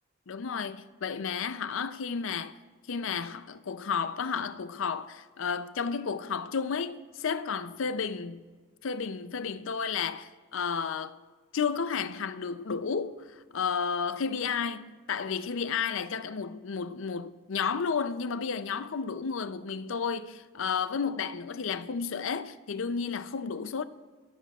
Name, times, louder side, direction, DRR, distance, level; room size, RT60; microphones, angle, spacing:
voice 1, 0.3-2.6 2.9-8.4 8.8-11.2 11.5-23.8, left 6 dB, 65° left, 0.5 m, -32 dB
23.0 x 14.5 x 2.4 m
head